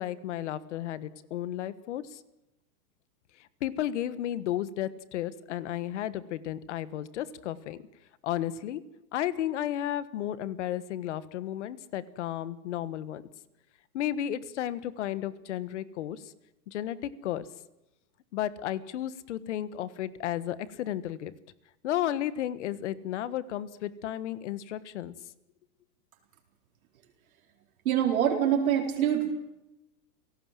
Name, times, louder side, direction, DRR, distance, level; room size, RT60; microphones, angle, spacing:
voice 1, 0.0-2.2 3.6-7.8 8.2-8.8 9.1-13.2 13.9-16.3 16.7-17.4 18.3-21.3 21.8-25.1, left 12 dB, 45° left, 15 dB, 1.4 m, -33 dB
voice 2, 27.8-29.3, right 9 dB, 60° right, 1 dB, 4.3 m, -25 dB
29.5 x 18.0 x 7.6 m, 0.92 s
supercardioid pair, 170°, 48 cm